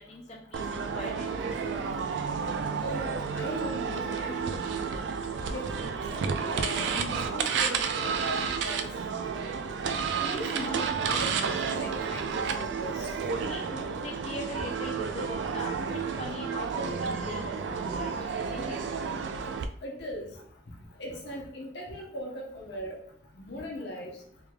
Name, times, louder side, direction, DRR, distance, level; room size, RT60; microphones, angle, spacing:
voice 1, 0.1-1.3 1.6-1.8 13.4-18.8, left 1 dB, 35° left, -2 dB, 0.4 m, -41 dB
sound 1, 0.5-19.6, right 5 dB, 75° right, 0.3 m, -31 dB
voice 2, 2.8-4.8 5.5-6.2 6.5-8.9 10.1-12.3 12.6-13.1 19.8-20.3 21.0-23.0 23.3-24.2, left 1 dB, 65° left, -1 dB, 0.9 m, -39 dB
3.4 x 3.2 x 2.3 m, 0.66 s
head